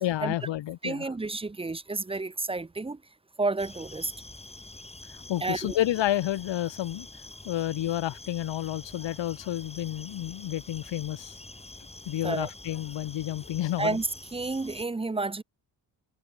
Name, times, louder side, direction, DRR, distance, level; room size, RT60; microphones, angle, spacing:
voice 1, 0.0-1.1 5.1-7.1 7.5-11.4 12.1-14.0, left 13 dB, 90° left, 1.8 m, -30 dB
voice 2, 0.8-3.0 3.4-4.1 5.4-5.7 12.2-12.5 13.8-15.4, right 3 dB, 15° right, 0.8 m, -30 dB
sound 1, 3.6-14.8, left 2 dB, 15° left, 6.6 m, -46 dB
cardioid pair, 115°, 43 cm